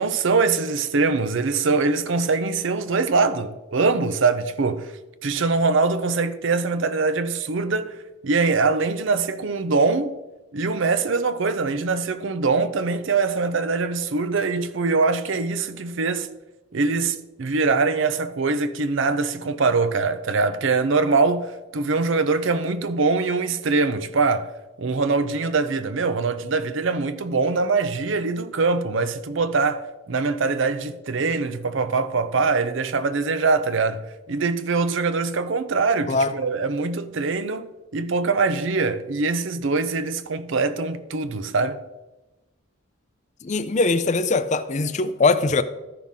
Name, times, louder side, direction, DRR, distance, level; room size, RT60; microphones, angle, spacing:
voice 1, 0.0-4.9 5.2-8.0 8.2-10.1 10.5-16.3 16.7-24.5 24.8-41.8, right 4 dB, 65° right, 0.6 m, -23 dB
voice 2, 43.4-45.6, left 3 dB, 35° left, 0.4 m, -21 dB
13.5 x 5.8 x 3.6 m
head